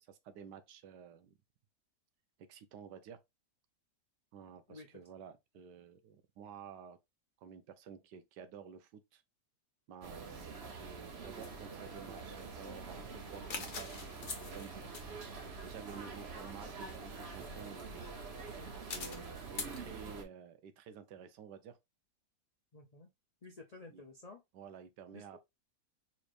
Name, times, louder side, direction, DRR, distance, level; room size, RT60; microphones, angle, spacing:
voice 1, 0.0-1.3 2.5-3.2 4.3-7.0 7.4-9.2 9.9-15.0 15.6-18.1 18.9-21.8 23.9-24.0 24.5-25.4, right 7 dB, 85° right, 1.3 m, -52 dB
sound 1, 10.0-20.2, right 4 dB, 45° right, 0.9 m, -46 dB
sound 2, 11.4-19.8, left 4 dB, 45° left, 0.7 m, -48 dB
voice 2, 22.7-23.1 23.4-24.4 25.1-25.4, left 3 dB, 70° left, 0.3 m, -52 dB
4.2 x 3.2 x 2.5 m
omnidirectional pair, 1.8 m